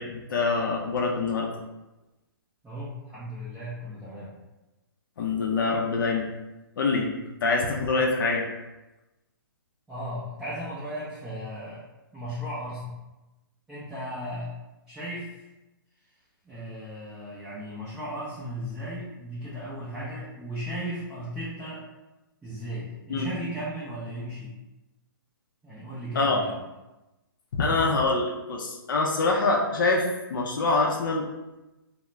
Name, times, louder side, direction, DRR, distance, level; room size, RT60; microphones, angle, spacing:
voice 1, 0.0-1.5 5.2-6.3 6.8-7.1 7.4-8.4 23.1-23.3 26.1-26.4 27.5-31.3, left 3 dB, 60° left, 0 dB, 0.5 m, -25 dB
voice 2, 2.6-4.3 9.9-11.9 12.1-13.0 13.7-14.5 14.9-15.4 16.4-21.8 22.4-24.5 25.6-26.6, equal, 5° right, -11 dB, 0.4 m, -36 dB
2.3 x 2.0 x 3.0 m, 1.0 s
hypercardioid pair, 140°, 12 cm